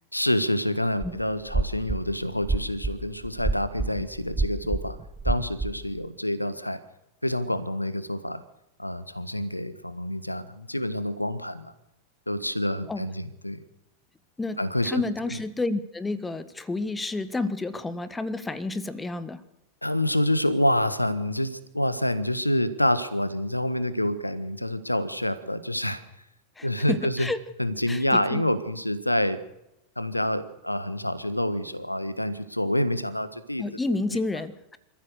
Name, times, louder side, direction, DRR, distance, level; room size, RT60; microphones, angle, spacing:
voice 1, 0.1-5.0 5.2-6.8 7.2-8.4 8.8-11.7 12.3-13.6 14.6-15.0 19.8-26.0 26.6-27.3 27.6-29.4 30.0-33.6, left 1 dB, 85° left, 13 dB, 1.4 m, -27 dB
sound 1, 1.0-1.1 1.5-2.0 2.4-6.0, right 3 dB, 10° right, 1.0 m, -28 dB
voice 2, 14.4-19.4 26.6-27.4 27.9-28.4 33.6-34.8, left 2 dB, 10° left, 13 dB, 1.4 m, -30 dB
27.0 x 14.5 x 6.7 m, 0.89 s
figure-of-eight pair, 90°, 0 cm